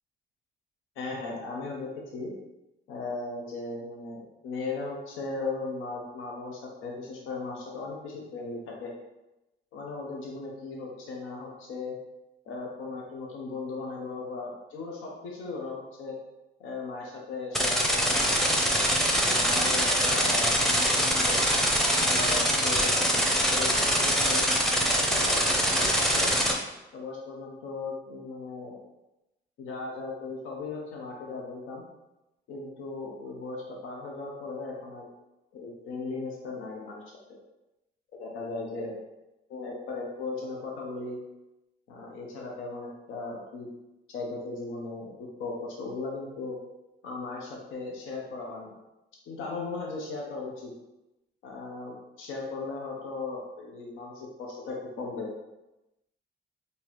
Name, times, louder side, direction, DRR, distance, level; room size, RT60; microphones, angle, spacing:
voice 1, 1.0-2.3 2.9-8.9 9.7-12.0 12.5-16.2 16.6-18.6 19.2-21.4 22.0-24.4 24.9-26.3 26.9-28.8 29.6-31.8 32.5-35.1 35.5-37.2 38.1-38.9 39.5-41.2 41.9-43.7 44.1-46.6 47.0-48.7 49.3-50.7 51.4-55.3, left 3 dB, 90° left, -1 dB, 0.7 m, -37 dB
sound 1, 17.5-26.5, equal, ahead, 0.6 m, -24 dB
3.8 x 2.7 x 3.0 m, 0.96 s
cardioid pair, 90°, 20 cm